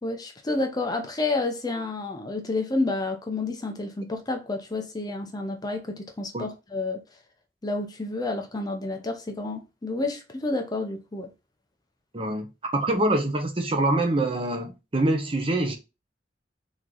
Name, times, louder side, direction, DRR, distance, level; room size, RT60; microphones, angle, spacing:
voice 1, 0.0-7.0 7.6-11.3, left 2 dB, 20° left, 0.5 m, -30 dB
voice 2, 12.1-12.5 12.7-15.7, right 2 dB, 30° right, 0.8 m, -25 dB
3.7 x 3.1 x 3.8 m
head